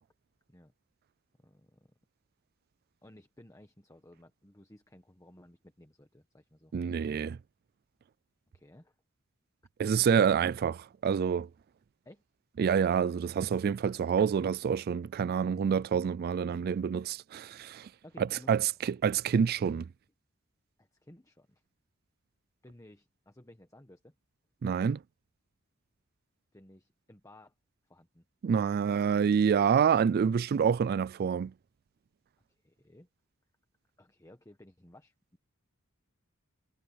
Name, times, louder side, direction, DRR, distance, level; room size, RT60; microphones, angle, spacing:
voice 1, 1.4-1.9 3.0-6.7 8.5-8.9 12.0-12.2 18.0-18.7 20.8-21.6 22.6-24.1 26.5-27.5 27.9-28.2 32.5-33.1 34.0-35.1, left 1 dB, 15° left, 1.3 m, -56 dB
voice 2, 6.7-7.4 9.8-11.5 12.6-17.9 18.2-19.9 24.6-25.0 28.4-31.5, right 7 dB, 45° right, 0.3 m, -27 dB
head